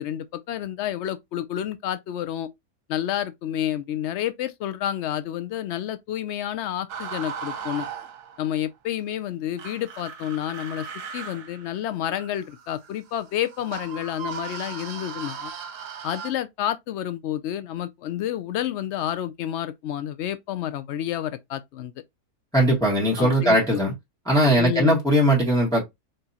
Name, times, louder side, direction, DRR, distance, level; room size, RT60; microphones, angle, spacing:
voice 1, 0.0-2.5 2.9-7.9 8.4-10.9 11.1-15.5 16.0-21.9 23.2-23.8 24.6-25.0, left 11 dB, 80° left, 0.6 m, -29 dB
sound 1, 6.9-8.6 9.6-16.3, right 6 dB, 75° right, 1.4 m, -37 dB
voice 2, 22.5-23.9 24.3-25.8, right 1 dB, ahead, 1.5 m, -19 dB
4.4 x 3.2 x 2.8 m
omnidirectional pair, 1.7 m